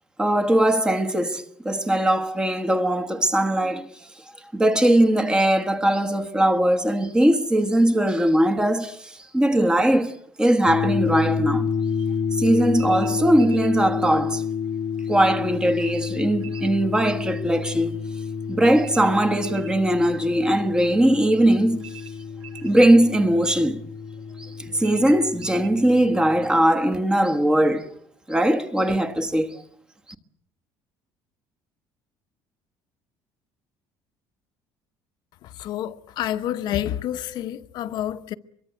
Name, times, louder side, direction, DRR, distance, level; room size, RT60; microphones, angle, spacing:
voice 1, 0.2-3.9 4.5-11.7 12.3-14.4 15.1-18.0 18.5-21.9 22.6-23.8 24.4-27.9 28.3-29.6, right 1 dB, 10° right, 1.3 m, -20 dB
sound 1, 10.7-26.5, left 6 dB, 25° left, 1.1 m, -29 dB
sound 2, 12.8-13.8 15.8-16.8 18.8-19.8 21.8-22.8 24.8-25.8, right 10 dB, 75° right, 7.7 m, -44 dB
voice 2, 35.4-38.3, left 11 dB, 55° left, 1.0 m, -29 dB
25.0 x 22.5 x 8.0 m
cardioid pair, 170°, 9 cm